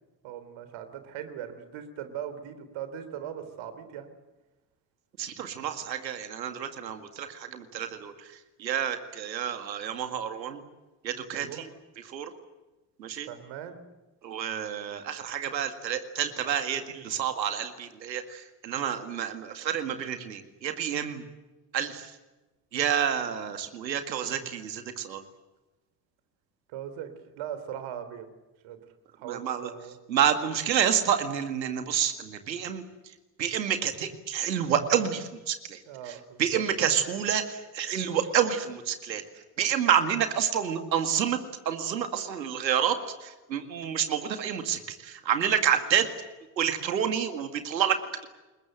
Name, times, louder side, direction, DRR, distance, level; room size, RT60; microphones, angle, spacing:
voice 1, 0.2-4.1 7.9-8.0 11.3-11.6 13.2-13.8 26.7-27.1 27.4-28.3 28.6-28.8 29.2-30.0 35.9-36.6, right 9 dB, 65° right, 10 dB, 3.6 m, -39 dB
voice 2, 5.2-8.1 8.6-10.6 11.0-11.7 12.1-12.3 13.0-13.3 14.2-21.2 21.7-22.1 22.7-25.2 29.3-29.7 30.1-32.8 33.4-35.8 36.1-36.2 36.4-39.2 39.6-46.1 46.6-48.3, right 8 dB, 90° right, 8 dB, 2.1 m, -29 dB
28.5 x 21.5 x 7.8 m, 1.1 s
hypercardioid pair, 50°, 50 cm